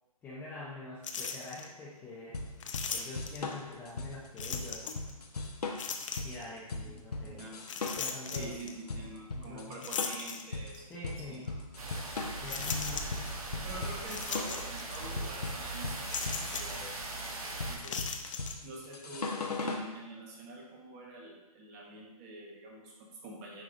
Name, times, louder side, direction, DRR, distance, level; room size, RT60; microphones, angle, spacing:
voice 1, 0.2-2.4 2.9-4.9 6.2-7.4 8.0-8.5 9.3-9.8 10.9-11.5 12.4-12.7, left 2 dB, 10° left, -7 dB, 0.8 m, -45 dB
sound 1, 1.0-1.7 2.6-3.5 4.4-5.1 5.8-6.5 7.6-8.7 9.8-10.9 11.4-11.5 12.5-13.4 14.1-15.0 15.2-15.4 16.1-16.8 17.8-18.6, left 6 dB, 55° left, 0.7 m, -38 dB
sound 2, 2.3-19.9, left 3 dB, 90° left, 1.0 m, -39 dB
voice 2, 7.2-7.6 8.3-10.9 11.2-11.6 12.5-13.0 13.6-17.0 17.7-18.0 18.6-23.6, right 1 dB, 25° right, -1 dB, 1.2 m, -46 dB
sound 3, 11.8-17.8, right 2 dB, 70° right, 1.6 m, -40 dB
9.4 x 4.8 x 2.5 m, 1.1 s
hypercardioid pair, 150°, 19 cm